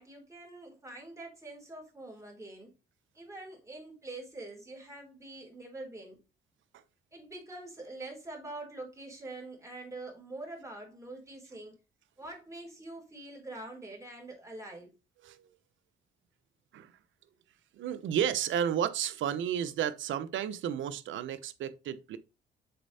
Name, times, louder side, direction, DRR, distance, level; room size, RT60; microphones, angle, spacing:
voice 1, 0.0-2.7 3.1-6.2 7.1-11.8 12.2-14.9, right 2 dB, 15° right, 3.7 m, -45 dB
voice 2, 17.8-22.2, right 9 dB, 75° right, 0.8 m, -32 dB
6.9 x 4.4 x 4.1 m
cardioid pair, 90°, 20 cm